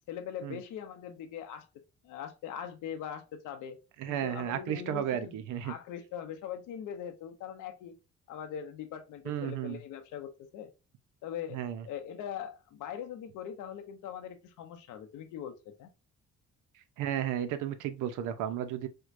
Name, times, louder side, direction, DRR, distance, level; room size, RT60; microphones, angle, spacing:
voice 1, 0.1-1.7 2.0-3.8 4.1-5.3 5.6-7.9 8.3-10.7 11.2-11.6 11.8-15.9, left 9 dB, 85° left, 0.6 m, -41 dB
voice 2, 4.0-5.7 9.3-9.8 11.5-11.8 17.0-18.9, right 10 dB, 85° right, 0.6 m, -33 dB
4.5 x 2.2 x 2.4 m
cardioid pair, 90°, 30 cm